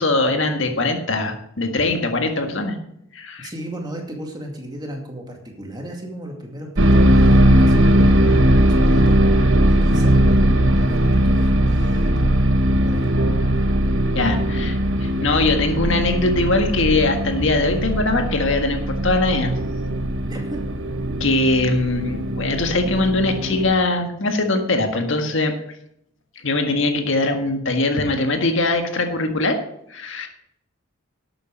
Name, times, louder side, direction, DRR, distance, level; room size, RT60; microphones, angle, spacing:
voice 1, 0.0-2.8 3.1-3.5 14.2-19.5 21.2-25.5 26.4-29.6 29.9-30.3, left 2 dB, 65° left, 5 dB, 1.7 m, -21 dB
voice 2, 3.4-9.2 9.7-12.4 12.8-13.1 20.1-20.6, right 1 dB, 20° right, 1 dB, 2.3 m, -35 dB
sound 1, 6.8-23.7, right 1 dB, 60° right, 1.1 m, -18 dB
12.0 x 8.9 x 5.2 m, 0.74 s
head